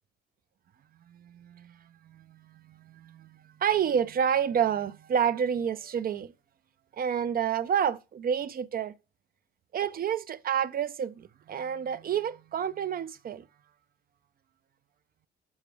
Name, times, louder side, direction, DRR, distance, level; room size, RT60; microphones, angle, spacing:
voice 1, 1.1-6.3 6.9-8.9 9.7-13.4, right 8 dB, 50° right, 0.5 m, -29 dB
7.2 x 4.6 x 3.2 m
cardioid pair, 90°, 20 cm